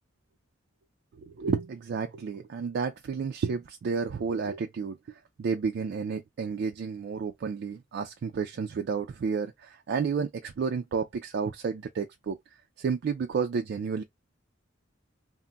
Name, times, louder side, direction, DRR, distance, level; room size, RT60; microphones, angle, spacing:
voice 1, 1.2-12.4 12.8-14.0, right 5 dB, 60° right, 0.3 m, -31 dB
2.2 x 2.0 x 3.7 m
head